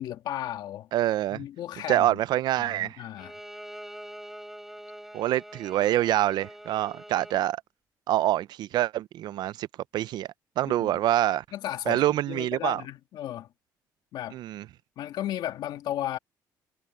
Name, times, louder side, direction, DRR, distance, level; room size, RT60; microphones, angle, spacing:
voice 1, 0.0-0.9 1.3-2.2 2.6-3.3 10.6-10.9 11.5-13.5 14.1-14.4 15.0-16.2, left 12 dB, 70° left, 2.1 m, -34 dB
voice 2, 0.9-1.4 1.9-3.0 5.1-7.6 8.1-9.7 9.9-10.3 10.6-11.4 11.9-12.8 14.3-14.6, right 13 dB, 70° right, 0.5 m, -26 dB
Bowed string instrument, 3.2-7.4, right 1 dB, 5° right, 4.4 m, -44 dB
cardioid pair, 105°, 8 cm